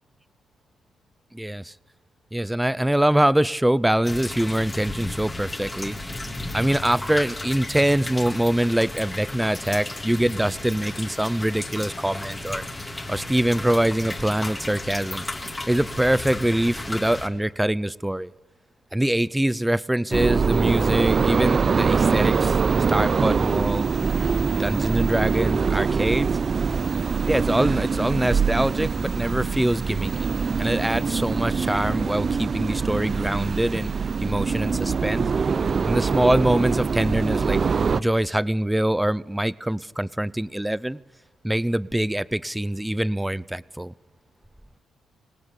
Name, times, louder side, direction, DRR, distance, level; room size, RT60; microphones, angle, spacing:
voice 1, 1.3-1.7 2.3-6.0 6.5-12.6 13.1-15.2 15.7-18.3 18.9-22.6 22.9-26.4 27.2-30.3 30.6-33.9 34.2-35.2 35.9-37.6 38.0-41.0 41.4-43.9, right 1 dB, 5° right, 20 dB, 0.7 m, -24 dB
sound 1, 4.0-17.3, left 2 dB, 15° left, 3.2 m, -34 dB
sound 2, 20.1-38.0, right 5 dB, 40° right, 0.8 m, -23 dB
25.0 x 18.5 x 10.0 m, 1.2 s
cardioid pair, 90°, 0 cm